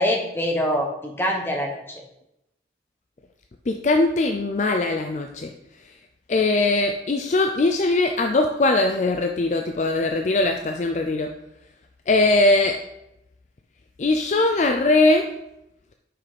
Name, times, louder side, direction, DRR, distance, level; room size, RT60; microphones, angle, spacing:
voice 1, 0.0-2.0, equal, 15° left, 1 dB, 1.0 m, -24 dB
voice 2, 3.7-5.5 6.3-11.3 12.1-12.8 14.0-15.3, left 2 dB, 40° left, 5 dB, 0.4 m, -20 dB
5.9 x 5.0 x 4.8 m, 0.86 s
head